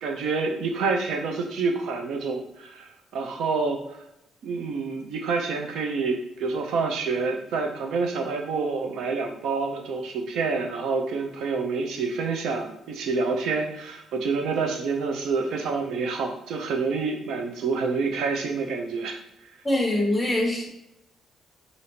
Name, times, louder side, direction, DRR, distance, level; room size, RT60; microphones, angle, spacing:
voice 1, 0.0-3.8 4.4-19.2, right 4 dB, 80° right, 3 dB, 0.6 m, -27 dB
voice 2, 19.6-20.7, left 1 dB, 20° left, -1 dB, 0.9 m, -23 dB
5.0 x 2.6 x 2.8 m, 0.86 s
cardioid pair, 90°, 0 cm